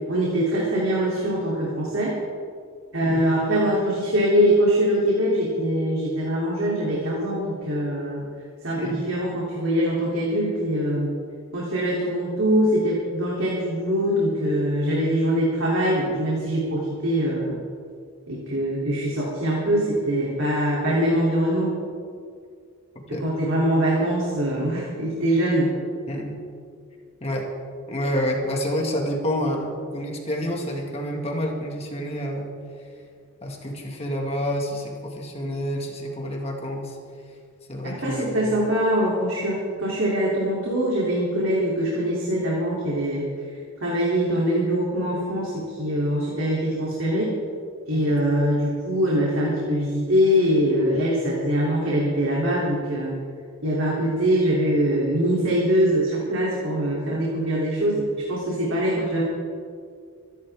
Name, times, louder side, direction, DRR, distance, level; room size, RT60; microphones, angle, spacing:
voice 1, 0.1-2.1 2.9-8.2 8.6-11.1 11.5-17.6 18.3-21.7 23.2-25.7 37.8-43.3 43.8-47.3 47.9-53.1 53.6-59.2, equal, 75° right, -5 dB, 3.3 m, -23 dB
voice 2, 8.8-9.1 23.1-23.3 26.1-26.4 27.2-27.5 27.9-32.6 33.4-37.0 37.7-38.4 47.9-48.2 56.9-57.0, equal, 30° left, 0 dB, 2.0 m, -28 dB
25.0 x 11.5 x 3.7 m, 2.2 s
head